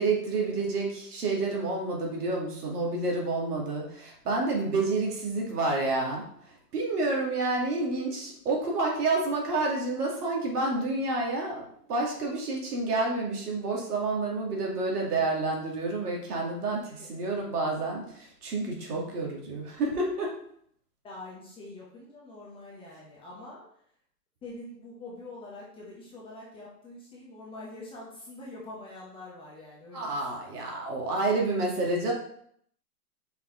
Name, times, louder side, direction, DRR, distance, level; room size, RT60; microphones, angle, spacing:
voice 1, 0.0-20.3 29.9-32.1, right 3 dB, 65° right, -1 dB, 2.4 m, -29 dB
voice 2, 21.0-23.6 24.4-30.4, left 2 dB, 10° left, -4 dB, 0.9 m, -45 dB
5.5 x 4.5 x 3.9 m, 0.68 s
hypercardioid pair, 145°, 48 cm